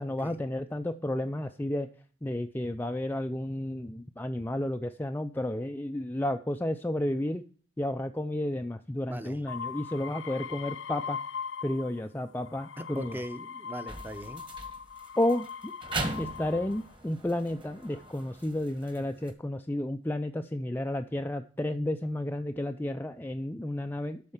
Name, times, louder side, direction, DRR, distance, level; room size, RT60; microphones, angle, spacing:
voice 1, 0.0-1.9 2.2-7.4 7.8-11.2 11.6-13.2 15.2-15.7 16.2-24.3, left 1 dB, 10° left, 6 dB, 0.4 m, -32 dB
voice 2, 9.1-9.4 12.8-14.5, equal, 10° right, 10 dB, 0.8 m, -40 dB
sound 1, 9.5-12.0 12.4-16.9 17.7-18.2, left 6 dB, 80° left, 0.5 m, -40 dB
sound 2, 13.9-19.3, right 2 dB, 25° right, 1.6 m, -40 dB
12.0 x 4.4 x 7.2 m, 0.41 s
head